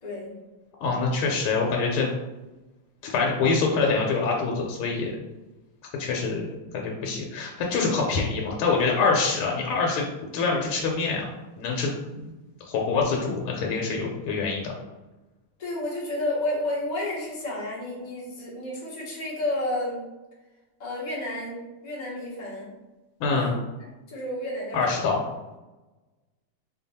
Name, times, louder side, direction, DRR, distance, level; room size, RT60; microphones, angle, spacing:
voice 1, 0.0-0.3 15.6-20.0 20.8-22.7 23.3-23.5 23.8-25.1, left 1 dB, 40° left, -5 dB, 0.6 m, -31 dB
voice 2, 0.8-2.1 3.0-5.1 6.0-6.5 6.7-10.0 10.3-11.3 11.6-12.3 12.7-14.7 23.2-23.6 24.7-25.2, left 4 dB, 90° left, -1 dB, 1.5 m, -25 dB
3.5 x 2.2 x 3.9 m, 1.1 s
omnidirectional pair, 2.3 m